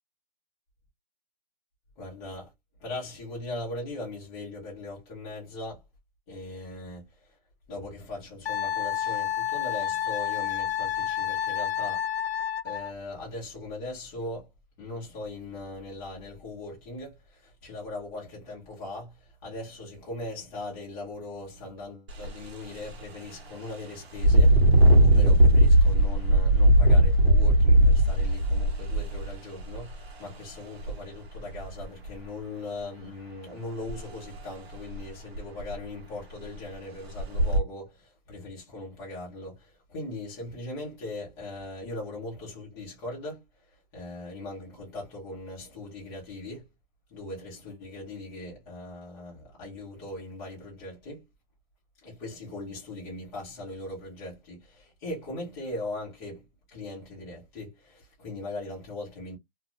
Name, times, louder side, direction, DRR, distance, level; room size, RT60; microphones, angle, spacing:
voice 1, 2.0-2.5 2.8-5.8 6.3-7.1 7.7-12.0 12.6-14.5 14.8-24.6 25.0-43.4 43.9-46.6 47.1-51.2 52.0-59.4, left 2 dB, 10° left, 0.5 m, -39 dB
Wind instrument woodwind instrument, 8.5-12.9, left 9 dB, 80° left, 0.5 m, -29 dB
Engine, 22.1-22.3 22.8-22.9 24.2-29.9 30.8-30.9 31.4-32.1 33.9-34.0 34.4-34.5 35.0-35.1 35.4-35.9 36.4-36.6 37.2-37.6, right 1 dB, 75° right, 1.2 m, -19 dB
2.5 x 2.2 x 2.9 m
hypercardioid pair, 170°, 31 cm